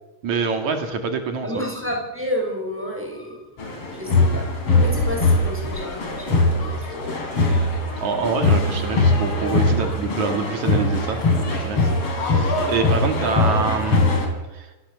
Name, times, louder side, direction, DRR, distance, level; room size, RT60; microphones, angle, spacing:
voice 1, 0.2-1.6 8.0-11.2 11.5-14.2 14.5-14.7, right 5 dB, 65° right, 5 dB, 3.5 m, -26 dB
voice 2, 1.4-3.5 3.9-7.2, equal, 5° right, 0 dB, 6.8 m, -30 dB
sound 1, 3.6-14.3, left 2 dB, 45° left, 4.5 m, -21 dB
27.5 x 18.5 x 7.0 m, 1.1 s
omnidirectional pair, 3.6 m